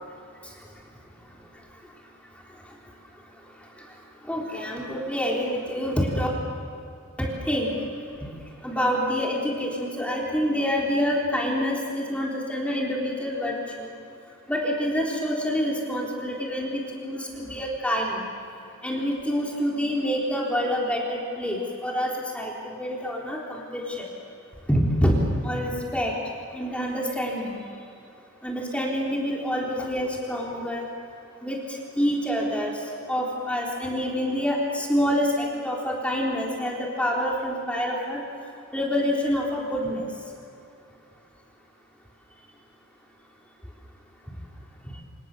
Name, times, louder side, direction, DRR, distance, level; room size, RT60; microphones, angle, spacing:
voice 1, 4.2-6.3 7.2-7.7 8.6-13.9 14.5-18.2 18.8-24.1 24.7-25.2 25.4-26.1 26.5-27.6 28.4-30.9 31.4-32.7 33.1-38.2 38.7-40.0, equal, 5° left, -3 dB, 3.8 m, -27 dB
28.0 x 28.0 x 6.8 m, 2.6 s
head